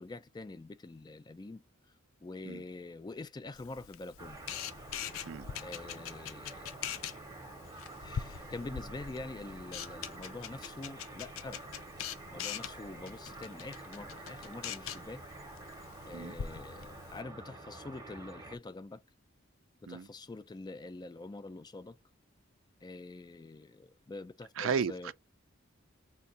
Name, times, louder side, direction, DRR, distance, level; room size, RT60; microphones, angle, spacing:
voice 1, 0.0-1.6 2.2-4.4 5.6-6.6 8.0-11.6 12.3-15.2 16.0-19.0 19.8-22.0 22.8-25.1, left 2 dB, 20° left, 0.3 m, -45 dB
Camera, 3.5-17.2, left 8 dB, 90° left, 0.5 m, -44 dB
sound 1, 4.2-18.6, right 2 dB, 20° right, 0.7 m, -48 dB
voice 2, 24.6-25.1, right 6 dB, 70° right, 0.4 m, -34 dB
3.3 x 2.2 x 3.9 m
head